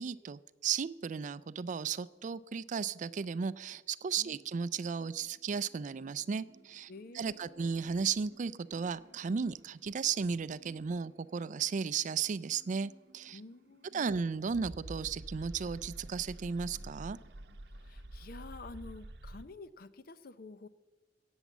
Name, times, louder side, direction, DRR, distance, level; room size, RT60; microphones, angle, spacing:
voice 1, 0.0-13.4 13.9-17.2, right 6 dB, 45° right, 18 dB, 0.4 m, -35 dB
sound 1, 4.3-19.4, right 1 dB, 65° right, 0.8 m, -51 dB
voice 2, 6.9-7.9 13.3-14.0 17.7-20.7, left 3 dB, 55° left, 14 dB, 0.6 m, -50 dB
17.0 x 7.2 x 7.3 m, 1.3 s
head